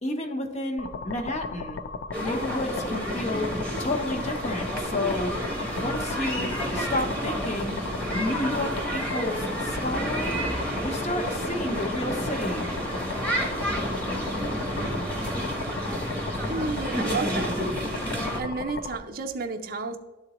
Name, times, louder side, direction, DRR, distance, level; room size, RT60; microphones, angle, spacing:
voice 1, 0.0-1.8 2.2-3.5 3.8-5.3 5.7-7.8 8.1-10.4 10.8-12.7, left 1 dB, 35° left, 0.8 m, -31 dB
sound 1, 0.8-19.0, left 3 dB, 55° left, 0.4 m, -36 dB
sound 2, 2.1-18.4, equal, 5° left, 0.9 m, -30 dB
Cricket, 3.8-17.7, equal, 75° left, 1.4 m, -41 dB
voice 2, 16.4-17.7 18.0-20.0, right 3 dB, 45° right, 0.5 m, -32 dB
11.5 x 3.9 x 2.9 m
head